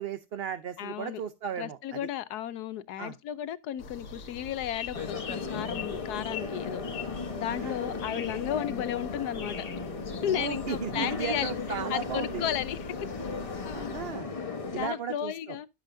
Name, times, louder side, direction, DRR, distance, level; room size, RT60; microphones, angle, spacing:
voice 1, 0.0-2.1 3.0-3.2 7.5-8.0 10.3-12.4 13.7-14.3 14.7-15.6, right 8 dB, 55° right, 0.7 m, -36 dB
voice 2, 0.8-1.2 1.6-6.8 7.3-9.6 10.2-11.5 11.9-12.9 13.7-14.0 14.7-15.7, left 11 dB, 75° left, 1.2 m, -34 dB
sound 1, 3.8-14.1, left 4 dB, 60° left, 1.7 m, -42 dB
sound 2, 4.9-14.9, left 4 dB, 25° left, 1.0 m, -36 dB
11.5 x 7.8 x 2.6 m
omnidirectional pair, 1.7 m